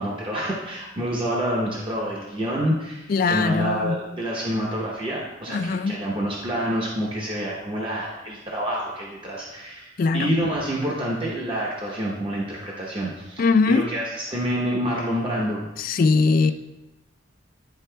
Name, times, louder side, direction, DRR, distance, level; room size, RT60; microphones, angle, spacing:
voice 1, 0.0-15.7, equal, 30° right, -4 dB, 0.8 m, -28 dB
voice 2, 3.1-3.9 5.5-6.0 10.0-10.3 13.4-13.9 15.8-16.5, left 4 dB, 50° left, 10 dB, 0.3 m, -20 dB
10.5 x 4.1 x 2.2 m, 1.0 s
head